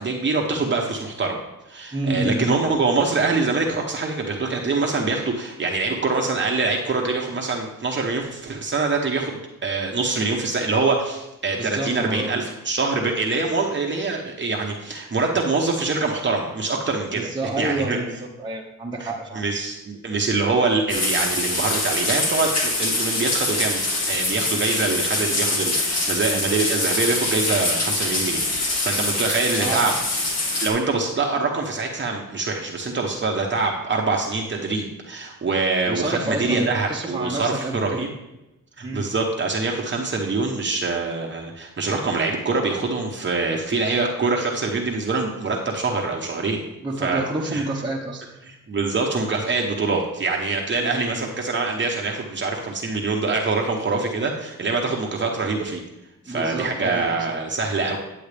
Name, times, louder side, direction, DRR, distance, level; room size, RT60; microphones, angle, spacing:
voice 1, 0.0-1.4 1.7-17.3 17.6-18.0 19.0-19.1 19.3-23.8 24.1-29.9 30.6-38.1 38.8-46.6 47.0-47.2 47.5-47.7 48.5-55.8 56.2-58.0, right 3 dB, 35° right, 0 dB, 1.1 m, -24 dB
voice 2, 1.9-2.6 11.6-12.4 17.1-19.4 29.6-29.9 35.9-38.1 38.8-39.1 46.8-48.3 50.8-51.2 56.2-57.4, right 2 dB, 15° right, -3 dB, 1.2 m, -29 dB
sound 1, 20.9-30.7, left 2 dB, 50° left, 2.1 m, -24 dB
9.8 x 7.7 x 3.4 m, 0.95 s
cardioid pair, 85°, 33 cm